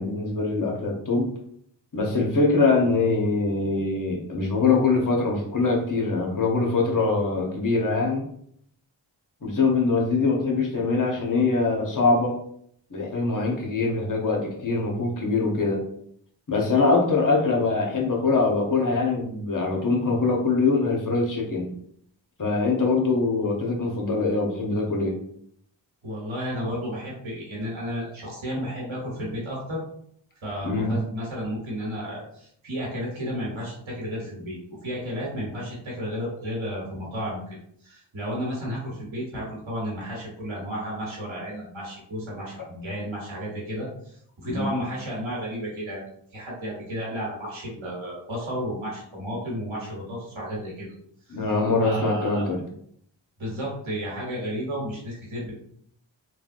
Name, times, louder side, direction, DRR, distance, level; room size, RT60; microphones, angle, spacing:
voice 1, 0.0-1.3 1.9-8.2 9.4-12.4 12.9-15.8 16.5-21.7 22.4-25.2 30.6-31.0 44.5-44.7 51.3-52.6, left 3 dB, 40° left, 0 dB, 1.0 m, -23 dB
voice 2, 26.0-29.8 30.4-37.6 37.8-46.0 46.3-50.9 51.3-51.4 51.8-52.6 53.4-55.5, equal, 80° right, -5 dB, 1.3 m, -32 dB
3.3 x 2.3 x 2.5 m, 0.67 s
cardioid pair, 45°, 47 cm